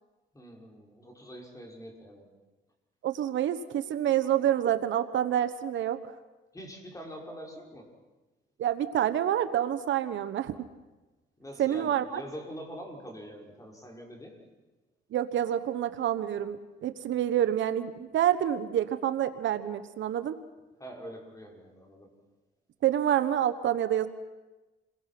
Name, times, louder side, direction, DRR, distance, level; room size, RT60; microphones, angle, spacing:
voice 1, 0.3-2.3 6.5-7.9 11.4-14.4 20.8-22.1, equal, 15° left, 0 dB, 6.0 m, -44 dB
voice 2, 3.0-6.1 8.6-10.5 11.6-12.2 15.1-20.3 22.8-24.1, right 11 dB, 70° right, 11 dB, 1.2 m, -27 dB
28.5 x 22.0 x 6.0 m, 1.1 s
cardioid pair, 90°, 20 cm